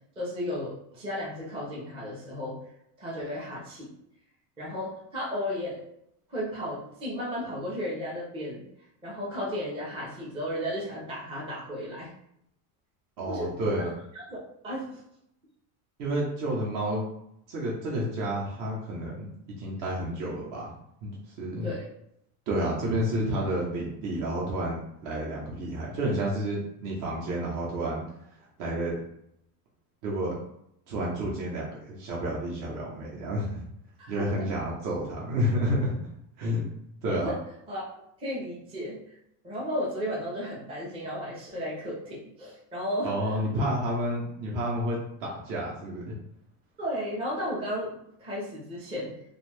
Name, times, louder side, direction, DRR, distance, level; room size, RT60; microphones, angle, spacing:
voice 1, 0.2-2.6 3.0-3.9 4.6-5.8 6.3-8.6 9.0-12.1 13.3-15.0 21.6-21.9 34.0-34.3 37.1-37.4 37.7-37.9 38.2-39.0 39.4-43.1 46.8-47.9 48.2-49.2, equal, 10° right, -6 dB, 0.5 m, -34 dB
voice 2, 13.2-13.9 16.0-17.1 17.5-19.3 19.6-20.7 21.0-21.7 22.5-28.0 28.6-29.0 30.0-30.3 30.9-33.7 34.1-36.0 36.4-36.6 37.0-37.3 43.0-46.1, equal, 45° right, -5 dB, 0.8 m, -30 dB
2.6 x 2.4 x 3.2 m, 0.76 s
cardioid pair, 155°, 46 cm